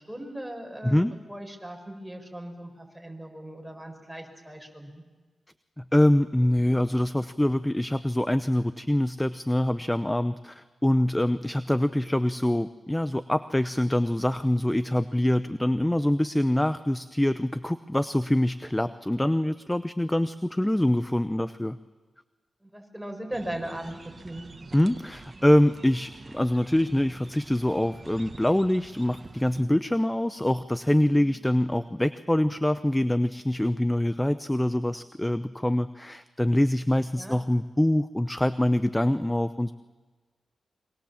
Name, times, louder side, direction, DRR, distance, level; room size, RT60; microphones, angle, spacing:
voice 1, 0.0-5.0 22.6-24.5 31.1-31.4 36.9-37.4, right 1 dB, 5° right, 2 dB, 6.3 m, -39 dB
voice 2, 0.8-1.1 5.8-21.8 24.7-39.7, left 1 dB, 10° left, 13 dB, 0.8 m, -25 dB
sound 1, 23.3-29.6, right 3 dB, 45° right, 1.6 m, -47 dB
25.0 x 23.5 x 7.4 m, 1.3 s
supercardioid pair, 45°, 0 cm